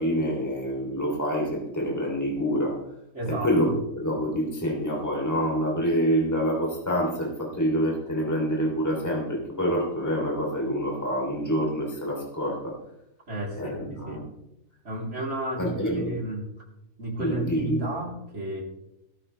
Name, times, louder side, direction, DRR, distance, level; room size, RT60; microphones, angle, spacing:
voice 1, 0.0-2.8 3.3-3.7 3.9-12.7 13.6-14.2 15.6-16.2 17.2-17.8, equal, 10° left, -2 dB, 3.2 m, -26 dB
voice 2, 3.1-3.8 13.3-13.7 14.1-14.2 14.8-16.4 17.0-18.6, right 2 dB, 55° right, -2 dB, 3.9 m, -32 dB
16.0 x 13.0 x 3.4 m, 0.85 s
omnidirectional pair, 1.5 m